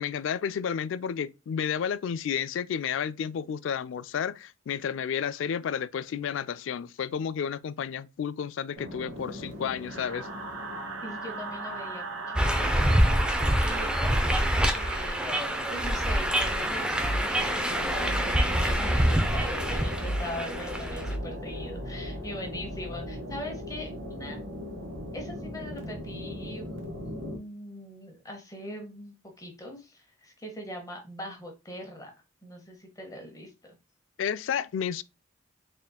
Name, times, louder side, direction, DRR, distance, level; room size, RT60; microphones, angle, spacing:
voice 1, 0.0-10.3 34.2-35.0, left 7 dB, 75° left, 0.3 m, -31 dB
sound 1, 8.7-27.4, right 1 dB, 75° right, 1.2 m, -37 dB
voice 2, 11.0-24.4 25.1-32.1 32.4-33.7, left 1 dB, 20° left, 1.0 m, -41 dB
sound 2, 12.4-21.1, equal, 5° right, 0.5 m, -26 dB
4.1 x 3.7 x 2.2 m
head